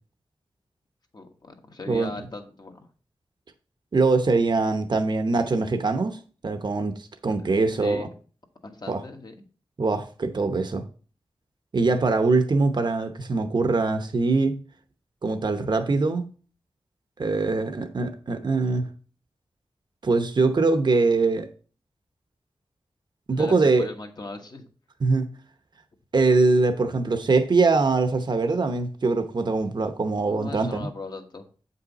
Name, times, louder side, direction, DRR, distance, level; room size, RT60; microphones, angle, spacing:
voice 1, 1.1-2.9 7.4-8.1 8.6-9.4 23.3-24.7 30.2-31.5, left 2 dB, 45° left, 4 dB, 1.4 m, -39 dB
voice 2, 3.9-8.1 8.9-9.0 9.8-10.8 11.7-14.6 15.2-16.2 17.2-18.9 20.0-21.5 23.3-23.9 25.0-25.2 26.1-30.9, right 3 dB, 50° right, 7 dB, 0.9 m, -23 dB
8.1 x 5.6 x 4.0 m, 0.39 s
wide cardioid pair, 85°, 10 cm